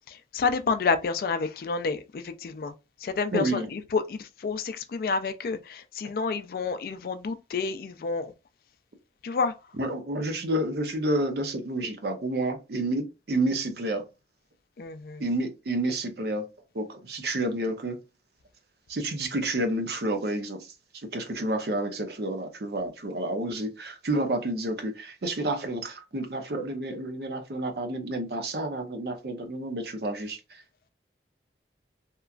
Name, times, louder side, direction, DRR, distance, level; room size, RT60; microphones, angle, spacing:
voice 1, 0.1-2.7 3.0-8.3 9.2-9.5 14.8-15.2, left 4 dB, 50° left, 0.3 m, -29 dB
voice 2, 3.3-3.7 9.8-14.0 15.2-16.5 16.7-18.0 18.9-20.7 21.1-30.6, right 1 dB, 60° right, 0.6 m, -30 dB
2.9 x 2.3 x 2.4 m
head